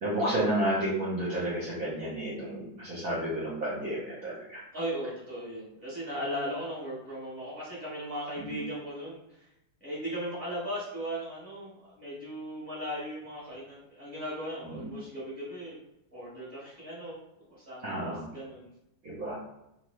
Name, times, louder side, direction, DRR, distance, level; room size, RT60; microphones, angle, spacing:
voice 1, 0.0-4.6 8.4-8.6 14.6-14.9 17.8-18.2 19.0-19.4, right 1 dB, 55° right, -7 dB, 1.0 m, -31 dB
voice 2, 4.7-9.5 9.8-15.8 16.1-17.2 17.6-18.7, equal, 5° left, -8 dB, 0.9 m, -37 dB
2.9 x 2.5 x 3.1 m, 0.86 s
omnidirectional pair, 2.1 m